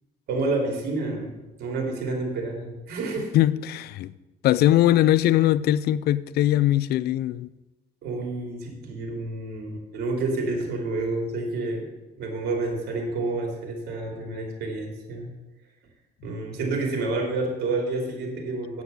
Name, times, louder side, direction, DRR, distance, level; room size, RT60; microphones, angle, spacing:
voice 1, 0.3-1.3 1.6-3.3 8.0-11.8 12.2-15.3 16.2-18.8, right 3 dB, 70° right, 3.1 m, -29 dB
voice 2, 3.3-4.1 4.4-7.5, left 13 dB, 70° left, 0.5 m, -21 dB
8.3 x 8.1 x 6.8 m
cardioid pair, 110°, 17 cm